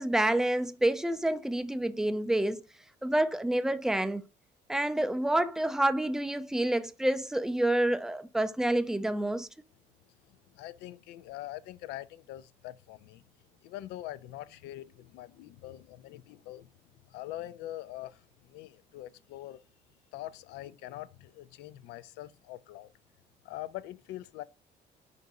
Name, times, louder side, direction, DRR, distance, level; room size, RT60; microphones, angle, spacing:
voice 1, 0.0-2.6 3.0-4.2 4.7-9.5, right 1 dB, 5° right, 0.3 m, -28 dB
voice 2, 10.5-13.2 13.6-16.7 17.1-19.6 20.1-22.9 23.4-24.4, left 14 dB, 90° left, 0.4 m, -43 dB
4.5 x 2.6 x 4.0 m
cardioid pair, 110°, 17 cm